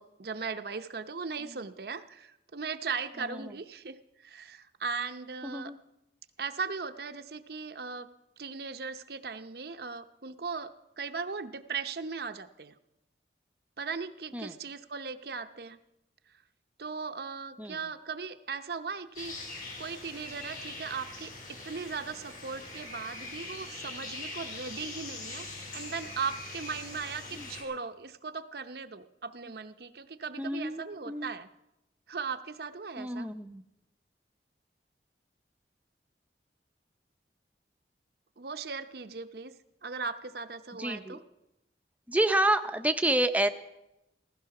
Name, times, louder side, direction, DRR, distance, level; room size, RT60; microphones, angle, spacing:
voice 1, 0.0-5.7 6.4-8.1 8.4-12.7 13.8-15.8 16.8-19.3 19.8-31.5 32.1-33.3 38.4-39.5 39.8-41.2, right 5 dB, 60° right, 8 dB, 0.7 m, -38 dB
voice 2, 3.2-3.5 5.4-5.8 14.3-14.6 17.6-17.8 27.3-27.5 30.4-31.3 33.0-33.6 40.8-41.2 42.1-43.5, right 1 dB, 10° right, 8 dB, 0.6 m, -29 dB
sound 1, 19.2-27.6, left 2 dB, 50° left, 4.4 m, -42 dB
15.5 x 14.5 x 5.9 m, 0.88 s
head